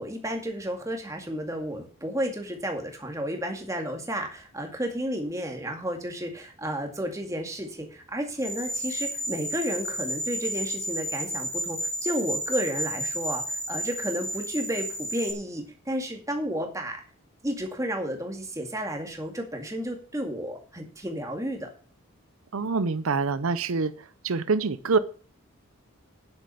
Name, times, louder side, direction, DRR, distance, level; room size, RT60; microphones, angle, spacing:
voice 1, 0.0-17.0 17.4-21.7, equal, 15° right, 3 dB, 2.1 m, -32 dB
sound 1, 8.4-15.3, equal, 15° left, 2.9 m, -32 dB
voice 2, 22.5-23.9 24.2-25.0, right 4 dB, 80° right, 14 dB, 0.7 m, -25 dB
9.9 x 7.7 x 6.8 m, 0.40 s
head